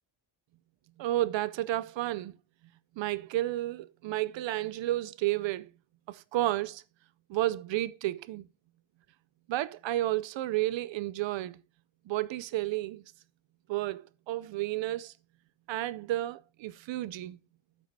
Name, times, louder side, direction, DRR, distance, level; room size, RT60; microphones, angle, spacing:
voice 1, 1.0-2.4 3.0-5.7 6.1-6.8 7.3-8.4 9.5-11.6 12.1-13.0 13.7-15.1 15.7-17.4, right 15 dB, 70° right, 0.6 m, -31 dB
12.0 x 8.3 x 2.7 m
cardioid pair, 110°, 47 cm